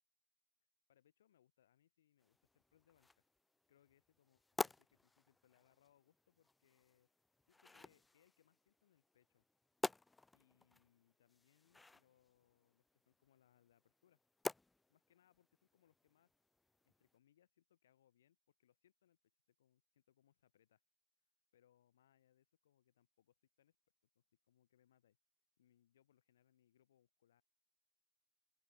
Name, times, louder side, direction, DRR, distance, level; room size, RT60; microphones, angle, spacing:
voice 1, 0.9-3.3 3.7-7.1 7.5-9.4 10.3-14.2 14.9-16.3 16.8-19.2 19.5-20.8 21.5-23.8 24.1-25.2 25.6-27.4, left 11 dB, 75° left, 3.3 m, -76 dB
sound 1, 2.2-17.2, left 2 dB, 10° left, 0.4 m, -51 dB
open air
hypercardioid pair, 80°, 0 cm